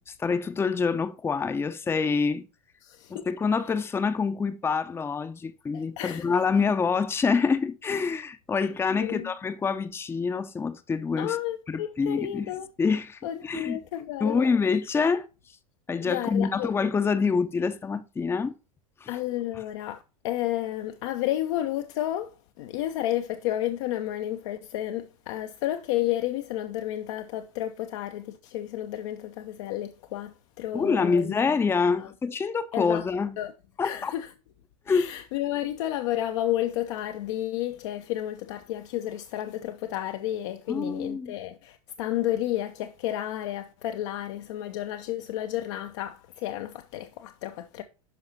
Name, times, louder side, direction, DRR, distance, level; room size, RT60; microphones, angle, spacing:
voice 1, 0.0-2.5 3.1-11.4 11.7-12.5 12.8-13.8 14.2-15.2 15.9-18.5 19.0-19.1 30.7-33.4 33.8-34.1 34.9-35.1 40.7-41.3, left 5 dB, 15° left, 0.6 m, -26 dB
voice 2, 2.8-3.2 5.7-6.3 8.9-9.3 11.2-12.7 13.2-14.5 16.1-16.7 19.1-22.3 22.6-31.3 31.9-32.1 32.7-33.1 33.4-33.5 33.8-34.3 34.9-47.8, left 13 dB, 55° left, 0.7 m, -31 dB
11.0 x 5.7 x 2.8 m
figure-of-eight pair, 85°, 18 cm